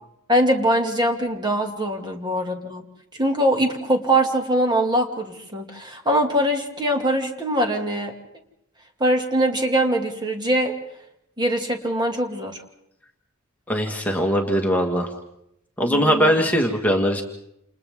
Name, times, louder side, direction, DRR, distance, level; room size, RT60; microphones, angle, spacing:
voice 1, 0.3-2.8 3.2-8.1 9.0-10.7 11.4-12.6 15.9-16.4, right 1 dB, 20° right, 3 dB, 2.4 m, -22 dB
voice 2, 13.7-15.1 15.8-17.2, equal, 10° left, 1 dB, 1.8 m, -20 dB
29.0 x 29.0 x 3.7 m, 0.78 s
head